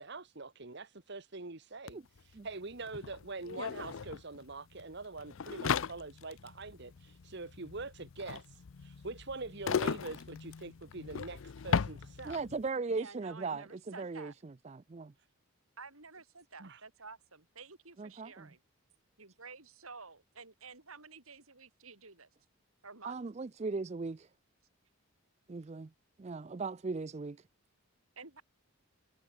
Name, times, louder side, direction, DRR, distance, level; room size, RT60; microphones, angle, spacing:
voice 1, 0.0-12.4 16.6-16.8, right 3 dB, 50° right, 1.3 m, -44 dB
sound 1, 1.9-2.0 2.2-12.6, left 6 dB, 65° left, 0.5 m, -37 dB
voice 2, 12.2-15.1 18.0-18.5 23.0-24.3 25.5-25.9 26.2-27.4, right 4 dB, 30° right, 0.4 m, -38 dB
voice 3, 12.9-14.3 15.8-18.6 19.2-22.3 22.8-23.2 28.2-28.4, right 4 dB, 75° right, 5.6 m, -51 dB
head